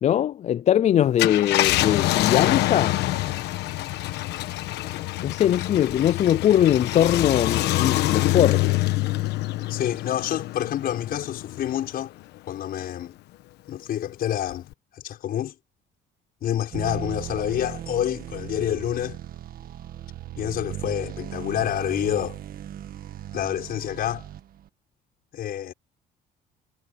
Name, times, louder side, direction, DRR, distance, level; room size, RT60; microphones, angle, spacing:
voice 1, 0.0-3.0 5.2-8.6, left 11 dB, 45° left, 0.4 m, -21 dB
Car, 1.0-11.9 12.4-12.5 14.5-14.7, left 17 dB, 85° left, 1.2 m, -25 dB
voice 2, 9.7-12.1 12.5-13.2 13.7-14.7 14.9-15.5 16.4-19.2 20.4-22.4 23.3-24.3 25.3-25.7, left 11 dB, 60° left, 6.1 m, -28 dB
sound 1, 16.7-24.7, right 11 dB, 60° right, 1.8 m, -37 dB
cardioid pair, 110°, 17 cm